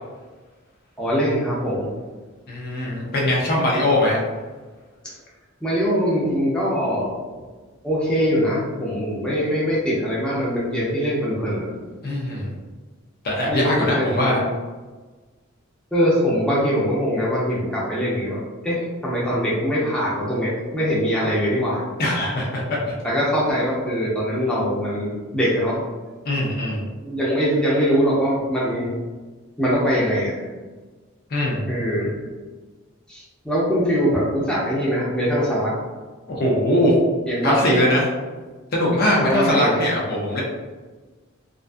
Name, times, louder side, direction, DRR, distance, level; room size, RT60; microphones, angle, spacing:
voice 1, 1.0-1.9 5.0-5.1 5.6-7.4 7.8-11.7 13.5-14.4 15.9-21.8 23.0-25.8 27.0-28.9 29.6-30.5 31.7-32.1 33.1-35.7 37.3-37.8 39.2-39.8, equal, 5° left, -7 dB, 0.6 m, -22 dB
voice 2, 2.5-4.2 12.0-12.5 13.2-14.4 22.0-22.9 26.3-26.8 31.3-31.7 36.3-37.0 37.4-38.0 38.7-40.4, left 1 dB, 45° left, -3 dB, 0.5 m, -21 dB
2.5 x 2.5 x 2.3 m, 1.3 s
head